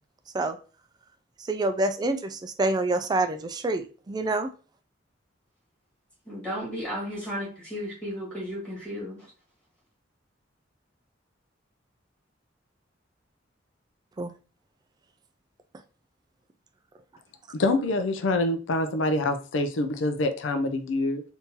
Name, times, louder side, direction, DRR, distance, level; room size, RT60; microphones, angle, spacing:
voice 1, 1.5-4.5 14.2-14.3, right 2 dB, 20° right, 0.3 m, -27 dB
voice 2, 6.3-9.3, equal, 5° left, 1.7 m, -34 dB
voice 3, 17.5-21.2, left 2 dB, 85° left, 0.5 m, -26 dB
3.6 x 2.7 x 2.8 m
head